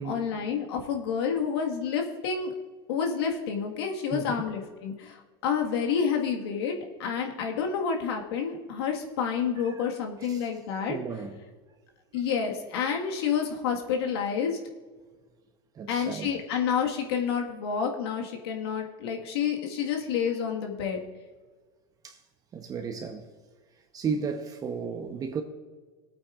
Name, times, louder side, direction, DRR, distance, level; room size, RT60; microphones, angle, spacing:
voice 1, 0.0-2.5 2.9-6.7 7.0-10.9 12.1-14.6 15.9-21.0, left 7 dB, 75° left, 1.6 m, -29 dB
voice 2, 4.1-4.4 9.6-9.8 10.3-10.5 10.9-11.4 15.7-16.3 22.0-22.2 22.5-23.3 23.8-25.4, right 5 dB, 25° right, 0.8 m, -34 dB
19.0 x 8.8 x 2.5 m
supercardioid pair, 120°, 13 cm